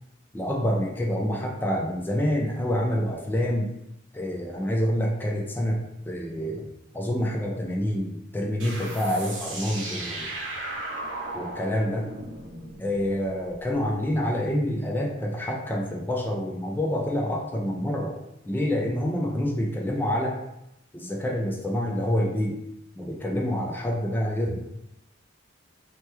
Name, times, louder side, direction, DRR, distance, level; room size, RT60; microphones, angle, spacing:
voice 1, 0.3-3.7 4.1-6.7 6.9-10.2 11.3-12.1 12.8-18.2 18.5-20.4 20.9-22.6 23.0-24.6, equal, 10° left, 0 dB, 0.3 m, -27 dB
sound 1, 8.6-13.9, right 2 dB, 80° right, 0.7 m, -36 dB
2.8 x 2.1 x 3.3 m, 0.84 s
head